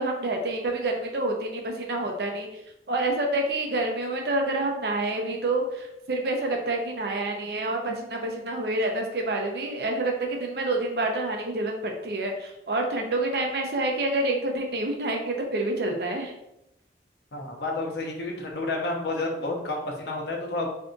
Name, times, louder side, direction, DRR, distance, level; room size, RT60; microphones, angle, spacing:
voice 1, 0.0-2.6 2.9-16.3, right 2 dB, 60° right, 2 dB, 0.6 m, -28 dB
voice 2, 17.3-20.7, left 2 dB, 65° left, 0 dB, 0.7 m, -30 dB
2.6 x 2.3 x 3.8 m, 0.85 s
head